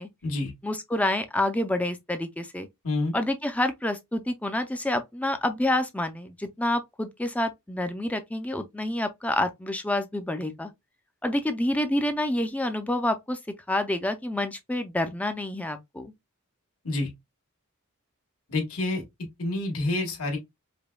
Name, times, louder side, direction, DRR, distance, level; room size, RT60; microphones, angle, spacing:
voice 1, 0.6-2.7 3.1-10.7 11.2-13.4 13.7-16.1, left 1 dB, 5° left, 0.4 m, -28 dB
voice 2, 18.5-19.0 19.4-20.4, left 2 dB, 75° left, 1.4 m, -28 dB
5.1 x 2.2 x 2.2 m
head